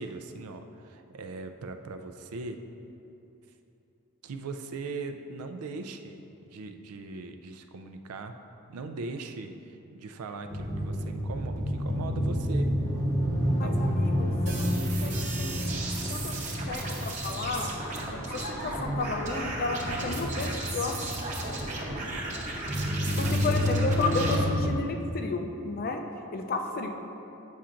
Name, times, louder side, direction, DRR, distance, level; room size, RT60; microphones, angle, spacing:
voice 1, 0.0-2.6 4.2-6.2 6.5-8.4 8.7-12.8 13.6-13.9 14.2-14.4 15.1-15.2 23.2-23.9 24.3-24.6, right 3 dB, 85° right, 7 dB, 0.4 m, -40 dB
sound 1, 10.5-24.8, equal, 15° left, 0.8 m, -30 dB
voice 2, 13.6-14.7 15.0-15.8 16.1-16.4 16.7-17.7 18.3-21.0 23.2-26.0 26.3-26.9, left 3 dB, 40° left, 4 dB, 0.4 m, -32 dB
sound 2, 14.5-24.4, right 2 dB, 35° right, 0.8 m, -36 dB
8.4 x 5.6 x 2.5 m, 2.9 s
head